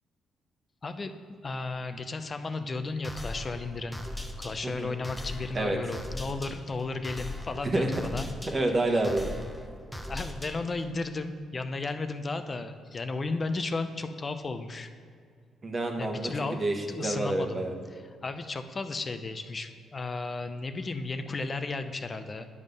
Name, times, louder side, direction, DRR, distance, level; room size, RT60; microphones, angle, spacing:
voice 1, 0.8-1.1 1.4-4.0 4.4-8.3 10.1-14.9 16.0-16.6 16.9-17.7 17.9-22.5, left 3 dB, 35° left, 9 dB, 0.6 m, -34 dB
sound 1, 3.0-10.9, left 1 dB, 5° left, 0.9 m, -40 dB
voice 2, 8.5-9.3 15.6-17.7, right 2 dB, 35° right, 3 dB, 1.2 m, -28 dB
9.5 x 5.3 x 5.4 m, 2.2 s
cardioid pair, 90°, 0 cm